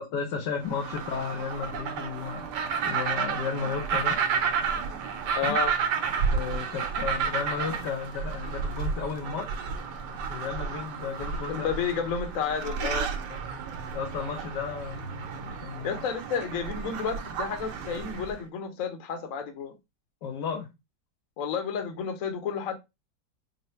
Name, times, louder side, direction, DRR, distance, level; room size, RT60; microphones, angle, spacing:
voice 1, 0.0-2.5 2.8-4.2 5.4-5.5 6.3-9.6 10.3-11.7 13.3-13.4 13.9-16.0 20.2-20.7, left 6 dB, 85° left, 1.3 m, -34 dB
sound 1, 0.6-18.4, right 6 dB, 90° right, 1.3 m, -31 dB
sound 2, 1.6-7.5, right 7 dB, 50° right, 0.8 m, -49 dB
voice 2, 5.4-5.8 11.5-13.1 15.8-19.7 21.4-22.8, left 6 dB, 65° left, 1.0 m, -31 dB
4.0 x 2.0 x 4.2 m
omnidirectional pair, 1.8 m